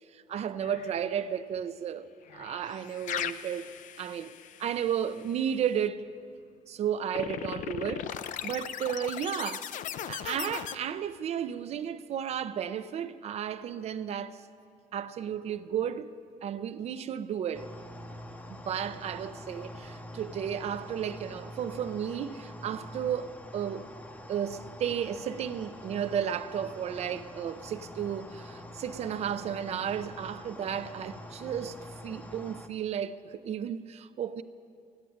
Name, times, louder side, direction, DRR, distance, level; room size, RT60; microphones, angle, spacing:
voice 1, 0.1-2.1 2.3-4.3 4.6-6.1 6.7-8.1 8.4-9.7 10.1-14.4 14.9-16.1 16.4-17.7 18.5-23.9 24.3-34.4, right 8 dB, 50° right, 0.5 m, -33 dB
sound 1, 0.6-1.2 2.3-5.4 7.1-10.8, left 10 dB, 65° left, 0.5 m, -38 dB
sound 2, 17.5-32.7, left 1 dB, 10° left, 0.7 m, -45 dB
14.5 x 10.0 x 9.3 m
cardioid pair, 165°, 14 cm